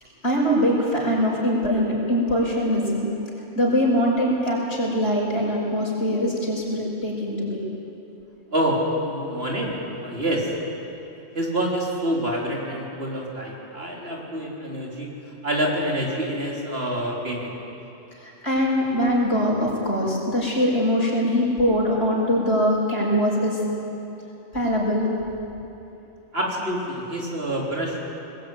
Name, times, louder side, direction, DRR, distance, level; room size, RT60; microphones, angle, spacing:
voice 1, 0.2-3.1 3.5-7.6 18.2-23.6 24.5-25.1, equal, 55° left, -4 dB, 6.4 m, -22 dB
voice 2, 8.5-10.5 11.3-15.1 15.4-17.5 26.3-28.0, right 1 dB, 50° right, -3 dB, 4.3 m, -27 dB
21.5 x 20.0 x 9.5 m, 3.0 s
omnidirectional pair, 1.3 m